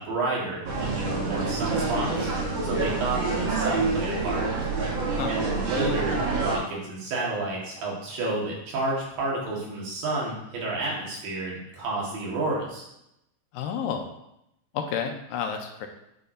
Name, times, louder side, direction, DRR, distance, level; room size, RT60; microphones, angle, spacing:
voice 1, 0.0-2.3 2.6-4.5 5.3-12.9, right 2 dB, 85° right, -4 dB, 3.5 m, -30 dB
sound 1, 0.6-6.6, right 3 dB, 55° right, 1.3 m, -27 dB
voice 2, 13.5-14.1 14.7-15.9, left 7 dB, 85° left, 4 dB, 2.3 m, -30 dB
10.5 x 4.7 x 2.7 m, 0.82 s
omnidirectional pair, 3.9 m